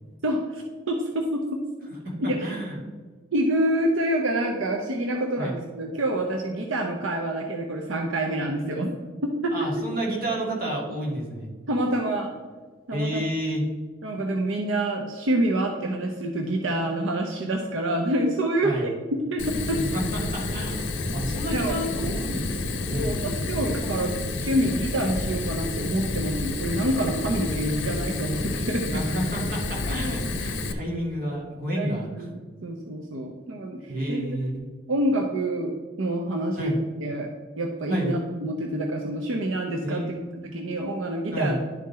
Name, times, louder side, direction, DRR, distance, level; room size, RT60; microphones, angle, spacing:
voice 1, 0.2-1.6 2.2-2.5 3.3-8.9 9.2-9.7 11.7-12.3 12.9-13.2 14.0-19.8 21.5-21.8 22.9-29.0 31.8-34.2 34.9-36.7 37.0-37.3 37.6-40.0 40.4-41.6, right 1 dB, 80° right, 2 dB, 0.7 m, -27 dB
voice 2, 2.2-2.8 5.4-5.5 9.5-11.5 12.9-13.6 18.6-18.9 19.9-22.5 22.8-23.2 23.5-24.2 28.9-32.3 33.9-34.6 36.6-36.8 37.9-38.1 39.8-40.6 41.3-41.6, equal, 45° right, -3 dB, 2.2 m, -30 dB
Fire, 19.4-30.7, left 2 dB, 75° left, 0.7 m, -30 dB
11.0 x 3.8 x 4.2 m, 1.4 s
head